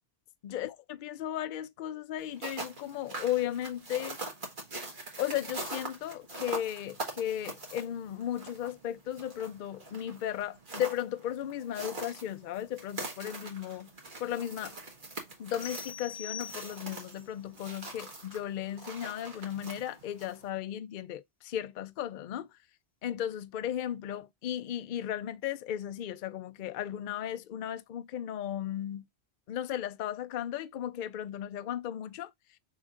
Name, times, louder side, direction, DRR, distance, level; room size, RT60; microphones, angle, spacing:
voice 1, 0.4-0.7 1.0-4.2 5.2-13.9 14.2-14.7 15.4-22.5 23.0-29.1 29.5-32.3, left 11 dB, 60° left, 0.6 m, -35 dB
sound 1, 2.2-20.5, right 2 dB, 50° right, 1.6 m, -43 dB
sound 2, 15.6-17.1, left 8 dB, 90° left, 1.3 m, -43 dB
6.2 x 2.9 x 2.4 m
omnidirectional pair, 1.1 m